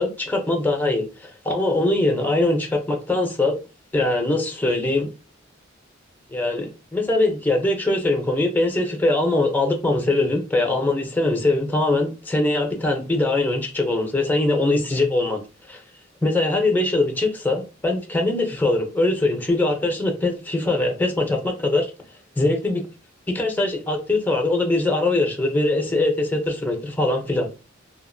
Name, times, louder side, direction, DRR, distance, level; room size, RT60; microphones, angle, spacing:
voice 1, 0.0-3.6 3.9-5.1 6.3-15.4 15.7-15.8 16.2-21.9 22.4-22.8 23.3-27.5, left 2 dB, 10° left, 0.6 m, -22 dB
2.8 x 2.5 x 2.5 m
head